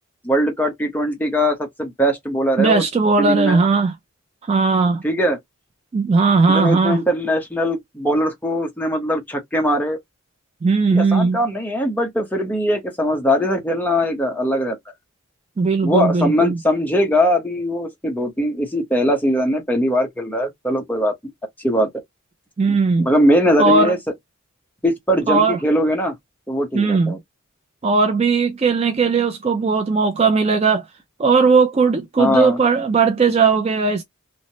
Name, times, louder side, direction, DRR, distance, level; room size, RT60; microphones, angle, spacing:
voice 1, 0.2-2.8 3.2-3.6 5.0-5.4 6.5-10.0 10.9-14.9 15.8-21.1 21.6-21.9 22.7-24.0 24.8-26.1 26.5-27.2 32.2-32.6, equal, 10° left, 0.7 m, -20 dB
voice 2, 2.6-3.9 4.5-5.0 5.9-7.0 10.6-11.4 15.6-16.6 22.6-23.1 23.6-24.0 25.3-25.6 26.7-27.2 27.8-30.8 31.2-34.0, right 4 dB, 30° right, 0.3 m, -17 dB
3.1 x 2.0 x 2.7 m
head